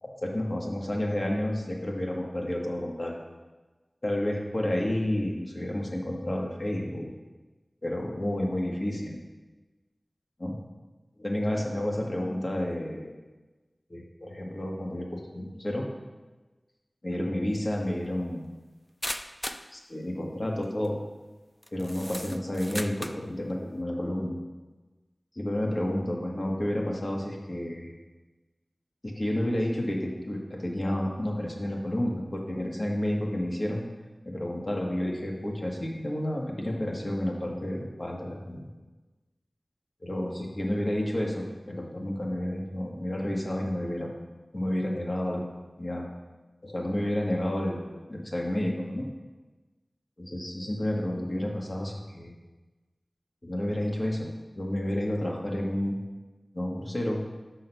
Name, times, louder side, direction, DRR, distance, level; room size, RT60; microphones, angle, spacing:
voice 1, 0.0-3.1 4.0-7.1 7.8-9.2 10.4-10.6 11.2-13.1 13.9-15.9 17.0-18.5 19.7-21.0 21.7-24.4 25.3-27.9 29.0-33.8 34.2-38.7 40.0-44.1 44.5-45.4 45.8-46.1 46.6-49.1 50.2-52.3 53.4-54.3 54.6-56.0 56.5-57.2, left 1 dB, 50° left, -1 dB, 1.5 m, -30 dB
sound 1, 17.6-17.7 19.0-19.7 20.6-20.9 21.6-23.2, equal, 15° left, 0.4 m, -36 dB
6.3 x 6.2 x 5.6 m, 1.2 s
wide cardioid pair, 45°, 0 cm